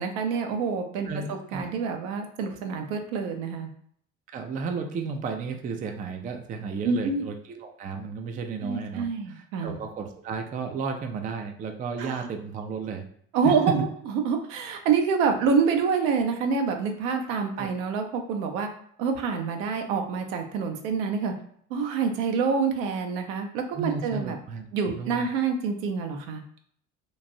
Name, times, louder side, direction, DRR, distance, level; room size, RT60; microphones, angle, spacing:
voice 1, 0.0-3.7 6.8-7.2 8.6-9.8 12.0-12.1 13.3-13.9 14.2-18.7 19.0-21.3 21.7-24.3 24.7-26.4, right 5 dB, 70° right, 5 dB, 0.6 m, -27 dB
voice 2, 1.0-1.6 4.3-13.1 13.4-13.9 17.6-17.7 23.7-25.3, right 5 dB, 20° right, 5 dB, 0.3 m, -33 dB
3.1 x 2.5 x 2.6 m, 0.64 s
figure-of-eight pair, 55°, 42 cm